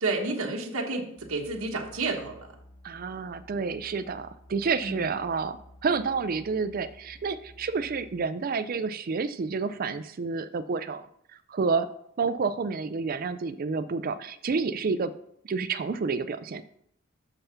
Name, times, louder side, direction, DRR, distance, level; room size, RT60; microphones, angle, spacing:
voice 1, 0.0-2.5 4.8-5.1, right 3 dB, 90° right, 0 dB, 1.2 m, -30 dB
sound 1, 1.2-8.2, left 1 dB, 80° left, 3.8 m, -53 dB
voice 2, 2.8-11.1 11.5-11.9 12.2-15.1 15.5-16.6, right 4 dB, 45° right, 12 dB, 0.4 m, -29 dB
6.9 x 5.6 x 5.7 m, 0.72 s
head